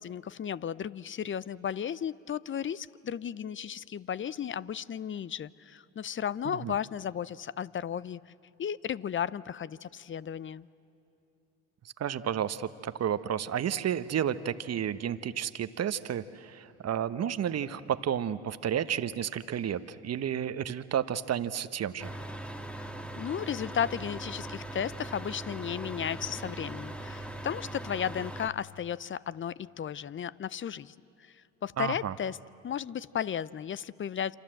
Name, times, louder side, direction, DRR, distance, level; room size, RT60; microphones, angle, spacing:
voice 1, 0.0-8.2 8.6-10.7 23.2-30.9 31.2-31.3 31.6-32.4 32.6-34.3, left 8 dB, 30° left, 19 dB, 0.6 m, -34 dB
voice 2, 12.0-22.1 31.8-32.1, right 9 dB, 40° right, 13 dB, 1.1 m, -31 dB
sound 1, 22.0-28.5, right 1 dB, 5° left, 1.6 m, -40 dB
27.5 x 27.0 x 7.7 m, 2.9 s
hypercardioid pair, 65°, 38 cm